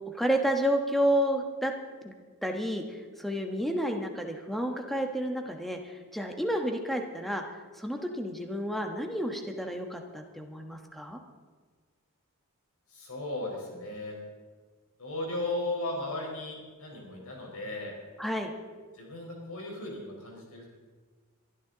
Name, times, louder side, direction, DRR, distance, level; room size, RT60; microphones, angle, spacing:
voice 1, 0.1-1.7 2.0-2.1 2.4-7.4 7.8-11.2 18.2-18.5, equal, ahead, 3 dB, 1.3 m, -30 dB
voice 2, 12.9-14.2 15.0-18.0 18.9-20.7, left 2 dB, 85° left, -1 dB, 4.8 m, -36 dB
23.0 x 12.5 x 4.0 m, 1.5 s
head